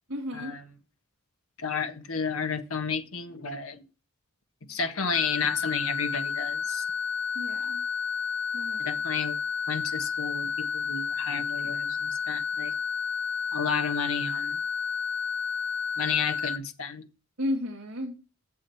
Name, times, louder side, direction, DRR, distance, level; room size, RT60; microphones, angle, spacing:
voice 1, 0.1-0.6 7.3-7.8 8.5-8.9 17.4-18.2, left 1 dB, 70° right, 2.1 m, -33 dB
voice 2, 1.6-3.8 4.7-6.8 8.8-9.4 9.7-12.7 13.5-14.6 16.0-17.1, left 5 dB, 85° left, 1.6 m, -32 dB
sound 1, 5.1-16.6, left 6 dB, 55° left, 1.1 m, -31 dB
7.5 x 7.4 x 8.2 m
head